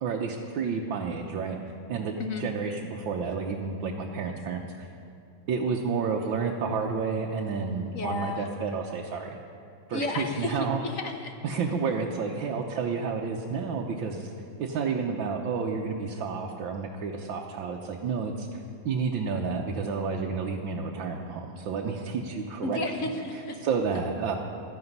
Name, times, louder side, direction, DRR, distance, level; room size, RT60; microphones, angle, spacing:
voice 1, 0.0-1.6 1.9-4.9 5.5-9.4 9.9-10.8 11.4-14.3 14.6-22.8 23.6-24.4, right 5 dB, 80° right, 0 dB, 1.6 m, -30 dB
voice 2, 7.9-8.5 9.9-11.4 22.6-23.6, left 3 dB, 50° left, 5 dB, 1.2 m, -32 dB
15.5 x 13.0 x 5.4 m, 2.6 s
omnidirectional pair, 2.1 m